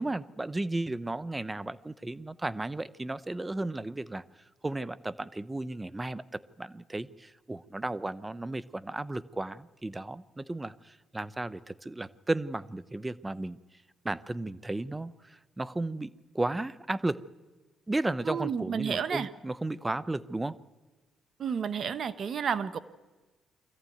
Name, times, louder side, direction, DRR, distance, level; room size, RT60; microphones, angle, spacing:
voice 1, 0.0-4.2 4.6-13.6 14.0-16.1 16.3-17.2 17.9-20.6, right 2 dB, 20° right, 18 dB, 0.9 m, -34 dB
voice 2, 18.3-19.3 21.4-22.8, right 7 dB, 55° right, 15 dB, 1.1 m, -31 dB
23.5 x 14.5 x 9.4 m, 1.3 s
supercardioid pair, 65°, 0 cm